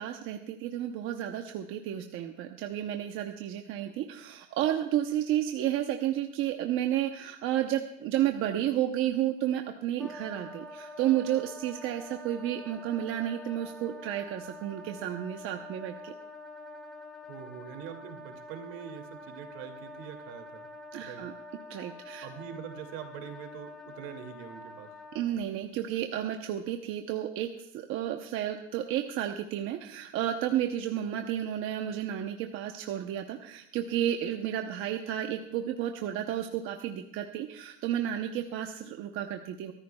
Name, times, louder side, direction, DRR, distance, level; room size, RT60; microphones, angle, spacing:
voice 1, 0.0-16.1 20.9-21.3 21.7-22.3 25.1-39.7, right 11 dB, 40° right, 5 dB, 0.9 m, -32 dB
Wind instrument woodwind instrument, 10.0-25.3, left 2 dB, ahead, 1.2 m, -46 dB
voice 2, 17.3-20.7 21.0-21.2 22.2-24.9, right 9 dB, 65° right, 6 dB, 2.5 m, -43 dB
24.0 x 14.0 x 2.3 m, 0.78 s
supercardioid pair, 150°, 32 cm